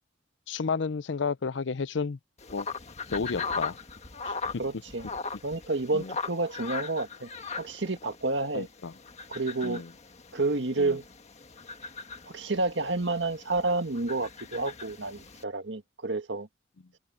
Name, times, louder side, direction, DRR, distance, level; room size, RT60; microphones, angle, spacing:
voice 1, 0.5-2.2 2.5-2.7 3.1-3.8 4.3-4.4 5.9-6.1 8.5-8.9 9.6-9.9 10.8-11.0, left 5 dB, 65° left, 0.6 m, -31 dB
sound 1, 2.4-15.4, left 4 dB, 35° left, 1.6 m, -39 dB
voice 2, 4.6-5.1 5.4-7.3 7.6-8.7 9.3-9.8 10.3-11.0 12.3-16.5, right 2 dB, 65° right, 1.9 m, -30 dB
head